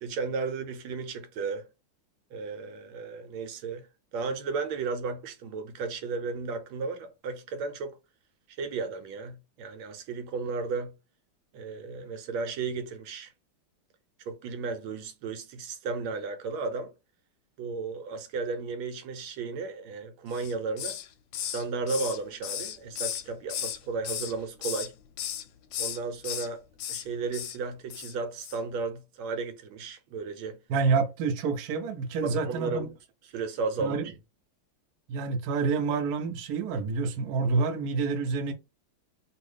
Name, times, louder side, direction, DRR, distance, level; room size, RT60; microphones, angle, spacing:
voice 1, 0.0-1.6 2.3-3.8 4.1-7.9 8.6-10.9 11.5-13.3 14.3-16.9 17.6-21.0 21.5-24.9 25.8-26.6 26.9-30.6 32.2-32.9 33.3-34.1, right 4 dB, 85° right, 1.5 m, -34 dB
Hiss, 20.3-21.1 21.3-23.8 24.0-24.9 25.2-25.4 25.7-26.5 26.8-27.0 27.3-27.6 27.9-28.1 28.4-28.6, left 10 dB, 75° left, 1.2 m, -35 dB
voice 2, 30.7-32.9 33.8-34.0 35.1-38.5, right 4 dB, 70° right, 0.9 m, -28 dB
3.0 x 2.7 x 3.2 m
omnidirectional pair, 2.2 m